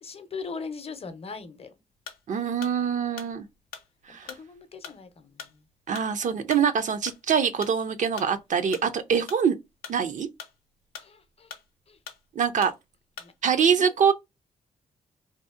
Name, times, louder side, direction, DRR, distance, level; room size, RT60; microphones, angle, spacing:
voice 1, 0.0-1.7 4.1-5.6 11.0-11.5 11.9-12.0 13.2-13.3 13.8-13.9, left 5 dB, 40° left, 0.6 m, -40 dB
sound 1, 2.0-2.3 2.6-7.8 8.2-9.5 9.7-11.3 11.5-12.3 12.6-12.8 13.2-13.4, left 8 dB, 90° left, 0.5 m, -43 dB
voice 2, 2.3-3.5 4.1-4.3 5.9-9.5 9.9-10.3 12.4-12.7 13.4-14.1, right 7 dB, 55° right, 0.4 m, -24 dB
2.7 x 2.0 x 2.4 m
supercardioid pair, 55°, 15 cm